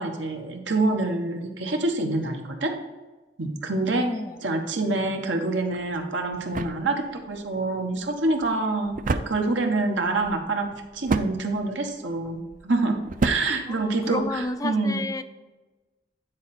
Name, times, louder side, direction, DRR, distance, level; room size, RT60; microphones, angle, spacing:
voice 1, 0.0-2.8 3.4-4.1 4.4-10.7 10.9-13.0 13.2-15.0, right 2 dB, 80° right, 3 dB, 1.2 m, -26 dB
voice 2, 4.0-4.4 13.7-15.2, left 2 dB, 20° left, 10 dB, 0.4 m, -31 dB
sound 1, 5.7-14.5, right 3 dB, 45° right, 0.5 m, -33 dB
9.6 x 4.4 x 4.2 m, 1.2 s
head